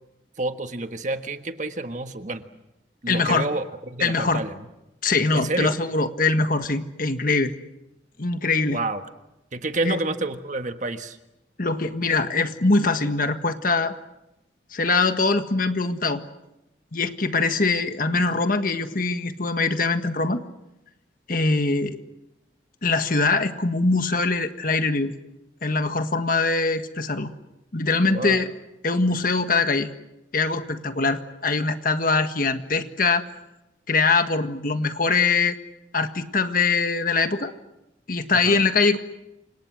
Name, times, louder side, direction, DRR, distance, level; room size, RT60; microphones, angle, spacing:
voice 1, 0.4-2.4 3.0-4.7 5.3-5.7 8.7-9.0 9.5-11.2 28.1-28.5 38.3-38.6, right 2 dB, 40° right, 7 dB, 1.5 m, -29 dB
voice 2, 3.1-3.5 4.0-4.4 5.0-7.5 8.2-8.8 9.8-10.0 11.6-13.9 14.7-16.2 16.9-20.4 21.3-22.0 22.8-25.1 25.6-27.3 27.7-28.5 28.8-29.9 30.3-33.2 33.9-35.6 35.9-37.5 38.1-39.0, left 3 dB, 45° left, 8 dB, 1.6 m, -22 dB
29.0 x 26.5 x 6.4 m, 0.92 s
head